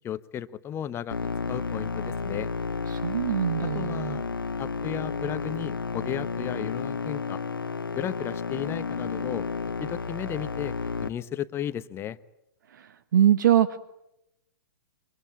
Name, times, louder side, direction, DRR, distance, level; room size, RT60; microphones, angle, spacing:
voice 1, 0.0-1.2 1.5-2.5 3.7-4.3 4.6-7.4 7.9-9.5 9.8-12.2, left 10 dB, 20° left, 15 dB, 1.0 m, -34 dB
sound 1, 1.1-11.1, left 4 dB, 80° left, 1.1 m, -32 dB
voice 2, 2.9-4.2 13.1-13.8, right 10 dB, 60° right, 13 dB, 1.2 m, -22 dB
27.5 x 24.0 x 8.9 m, 0.84 s
figure-of-eight pair, 115°, 11 cm